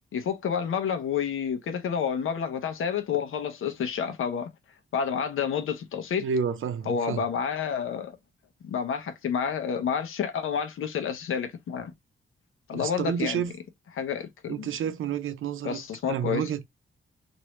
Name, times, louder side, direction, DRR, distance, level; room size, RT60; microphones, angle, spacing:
voice 1, 0.1-4.5 4.9-6.3 6.9-8.2 8.6-11.9 12.7-13.4 13.9-14.7 15.6-16.4, left 7 dB, 80° left, 0.8 m, -29 dB
voice 2, 6.2-7.2 12.7-13.5 14.5-15.8 16.1-16.7, right 7 dB, 75° right, 0.6 m, -30 dB
3.1 x 2.6 x 3.0 m
cardioid pair, 105°, 21 cm